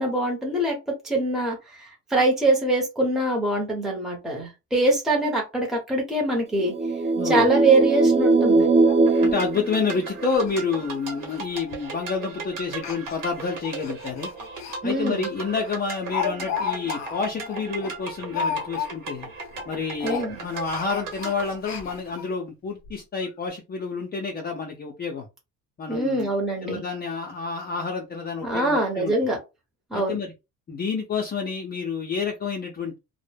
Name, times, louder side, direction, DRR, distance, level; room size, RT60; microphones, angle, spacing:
voice 1, 0.0-6.7 7.2-8.7 14.8-15.3 20.0-20.3 25.9-26.8 28.4-29.4 29.9-30.2, right 2 dB, ahead, -1 dB, 0.8 m, -23 dB
sound 1, 6.6-10.4, right 3 dB, 20° right, 0.3 m, -20 dB
voice 2, 7.2-7.5 9.2-14.3 14.8-19.3 19.7-25.3 25.8-26.3 26.6-29.1 29.9-30.3 30.7-33.0, left 5 dB, 30° left, 1 dB, 0.5 m, -29 dB
Speech, 8.0-8.1 8.4-8.5 8.9-9.0 9.3-9.4 9.9-10.0 10.3-10.6 10.8-11.0 11.7-12.0 12.7-14.8 15.2-15.3 15.6-19.2 19.5-19.7 20.0-22.3 22.8-22.9 23.2-23.3, left 6 dB, 60° left, 0.8 m, -33 dB
sound 2, 9.1-21.5, right 4 dB, 80° right, 1.1 m, -37 dB
2.1 x 2.0 x 3.2 m, 0.26 s
cardioid pair, 105°, 32 cm